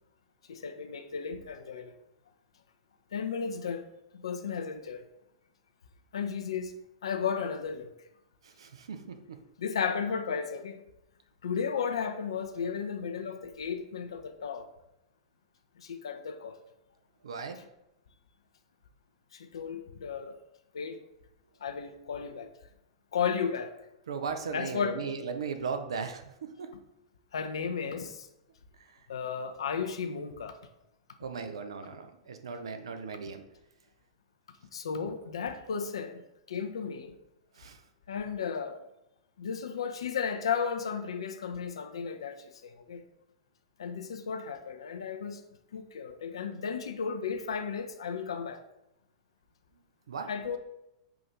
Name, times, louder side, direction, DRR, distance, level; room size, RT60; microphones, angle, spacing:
voice 1, 0.5-1.9 3.1-5.1 6.1-6.7 7.0-7.9 9.6-10.8 11.4-14.7 15.8-16.6 19.3-20.4 20.7-21.0 21.6-22.5 23.1-23.8 24.5-25.0 27.3-28.3 29.1-30.6 34.7-36.2 36.5-37.1 38.1-38.8 39.4-43.0 43.8-45.4 45.7-48.6 50.3-50.6, left 6 dB, 70° left, 0.5 m, -34 dB
voice 2, 8.4-9.4 17.2-17.6 24.1-26.7 28.8-28.9 31.2-33.4 37.6-37.8 50.1-50.3, right 5 dB, 70° right, 0.5 m, -37 dB
5.8 x 2.6 x 3.2 m
figure-of-eight pair, 100°, 3 cm